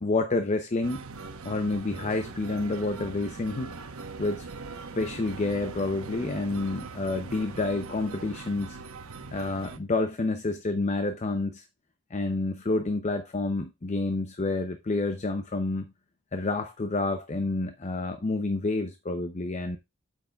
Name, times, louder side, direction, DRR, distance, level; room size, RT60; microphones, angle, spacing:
voice 1, 0.0-1.0 1.4-3.7 4.2-4.5 5.0-8.8 9.3-11.6 12.1-15.9 16.3-19.8, left 2 dB, 35° left, 0.6 m, -29 dB
sound 1, 0.8-9.8, right 3 dB, 80° right, 1.0 m, -41 dB
9.0 x 7.2 x 2.3 m
head